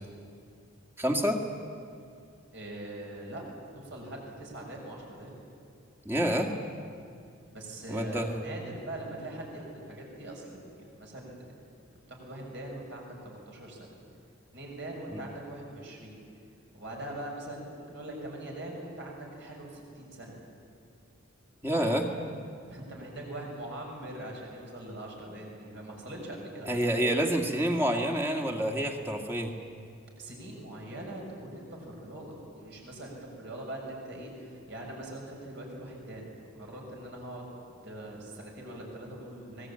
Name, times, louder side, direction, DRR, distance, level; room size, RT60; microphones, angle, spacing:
voice 1, 1.0-1.4 6.1-6.5 7.9-8.4 15.1-15.2 21.6-22.1 26.7-29.5, equal, 10° right, 2 dB, 2.0 m, -28 dB
voice 2, 2.5-3.4 3.7-5.4 7.5-11.6 12.1-13.9 14.5-16.2 16.7-20.4 21.8-22.2 22.6-27.2 30.2-36.3 36.6-39.7, right 1 dB, 55° right, -1 dB, 6.8 m, -42 dB
25.0 x 20.0 x 8.9 m, 2.4 s
head